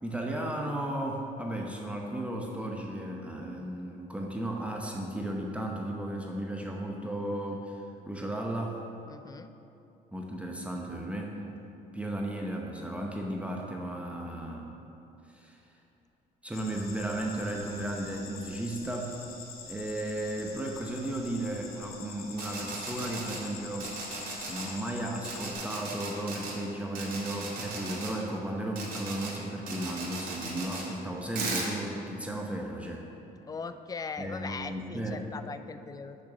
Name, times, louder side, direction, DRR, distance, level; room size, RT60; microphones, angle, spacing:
voice 1, 0.0-8.8 10.1-11.4 11.9-14.7 15.3-15.6 16.4-19.2 19.7-24.0 24.5-33.0 34.2-35.2, right 1 dB, 5° right, -1 dB, 0.8 m, -35 dB
voice 2, 9.1-9.5 33.5-36.2, left 5 dB, 20° left, 10 dB, 0.4 m, -39 dB
sound 1, 16.5-25.5, left 5 dB, 60° left, 1.0 m, -46 dB
sound 2, 22.3-23.4 23.8-24.7 25.2-26.5 26.9-28.1 28.7-29.3 29.7-30.8 31.3-31.7, right 3 dB, 60° right, 2.0 m, -37 dB
6.4 x 6.1 x 6.1 m, 2.8 s
cardioid pair, 110°, 17 cm